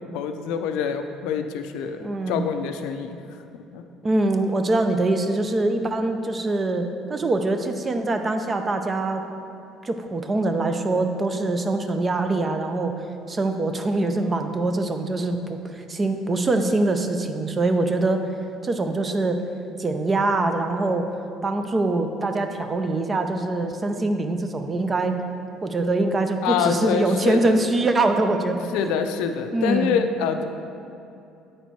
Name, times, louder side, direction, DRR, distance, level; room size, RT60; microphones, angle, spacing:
voice 1, 0.1-2.0 2.3-3.2 3.7-3.8 26.4-27.6 28.7-30.4, left 7 dB, 85° left, 7 dB, 0.4 m, -25 dB
voice 2, 2.0-2.5 4.0-9.2 9.8-12.9 13.3-18.2 18.6-19.4 19.8-21.1 21.4-25.2 25.6-28.7 29.5-29.9, right 2 dB, 25° right, 7 dB, 0.5 m, -23 dB
9.1 x 4.3 x 4.5 m, 2.7 s
cardioid pair, 125°, 0 cm